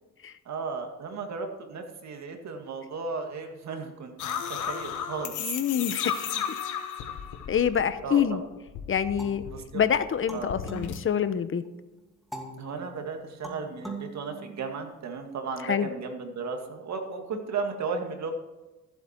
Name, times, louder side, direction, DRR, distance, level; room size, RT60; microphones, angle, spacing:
voice 1, 0.5-6.1 6.3-6.4 8.0-8.4 9.4-9.8 10.3-10.6 12.6-18.3, right 5 dB, 65° right, 4 dB, 2.1 m, -35 dB
sound 1, 4.2-8.2 8.5-11.0, left 8 dB, 75° left, 1.3 m, -34 dB
voice 2, 5.4-6.4 7.5-8.4 8.9-9.4 9.7-11.6 15.6-15.9, left 8 dB, 45° left, 12 dB, 0.9 m, -26 dB
sound 2, 9.2-11.7 12.3-15.1, right 2 dB, ahead, 2.3 m, -43 dB
14.0 x 8.2 x 4.5 m, 1.1 s
cardioid pair, 90°, 30 cm